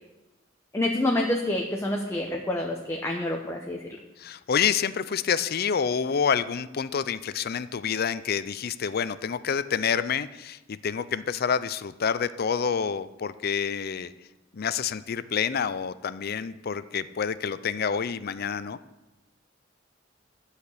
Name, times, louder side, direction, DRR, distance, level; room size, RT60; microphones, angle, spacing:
voice 1, 0.7-4.0, left 1 dB, 15° left, 0 dB, 0.8 m, -27 dB
voice 2, 4.2-14.1 14.5-18.8, left 7 dB, 50° left, 15 dB, 0.5 m, -28 dB
12.0 x 4.9 x 8.3 m, 1.0 s
head